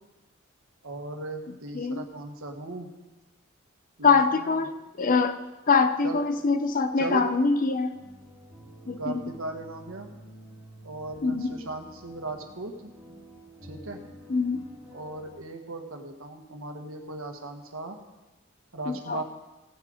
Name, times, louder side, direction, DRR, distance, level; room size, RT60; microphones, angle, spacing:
voice 1, 0.8-2.9 4.0-4.7 6.0-6.2 7.0-7.3 9.0-10.1 10.8-12.9 13.6-14.0 14.9-18.0 18.7-19.2, right 2 dB, 80° right, 4 dB, 1.4 m, -37 dB
voice 2, 4.0-5.4 5.7-7.9 8.9-9.2 11.2-11.6 14.3-14.6 18.9-19.2, left 4 dB, 40° left, 10 dB, 0.7 m, -24 dB
sound 1, 7.9-15.4, equal, 5° right, 3.3 m, -49 dB
16.5 x 7.4 x 5.1 m, 1.1 s
head